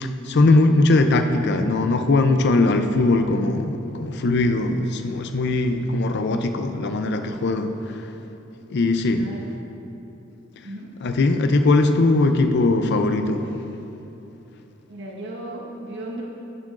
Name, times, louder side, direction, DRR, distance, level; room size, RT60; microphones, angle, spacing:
voice 1, 0.0-7.7 8.7-9.3 11.0-13.5, left 2 dB, 55° left, 8 dB, 0.5 m, -20 dB
voice 2, 9.2-9.5 10.6-10.9 14.9-16.2, right 1 dB, 60° right, -2 dB, 1.2 m, -35 dB
11.0 x 7.6 x 2.5 m, 3.0 s
head